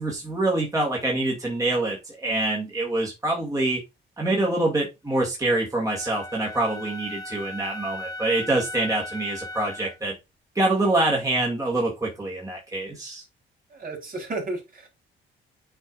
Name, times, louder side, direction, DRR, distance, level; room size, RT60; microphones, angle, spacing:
voice 1, 0.0-3.8 4.2-10.1 10.5-13.2, right 2 dB, 15° right, 2.2 m, -25 dB
Wind instrument woodwind instrument, 5.9-10.0, left 1 dB, 15° left, 1.1 m, -37 dB
voice 2, 13.7-14.9, right 2 dB, 45° right, 3.9 m, -33 dB
8.1 x 4.8 x 2.5 m
cardioid pair, 90°, 20 cm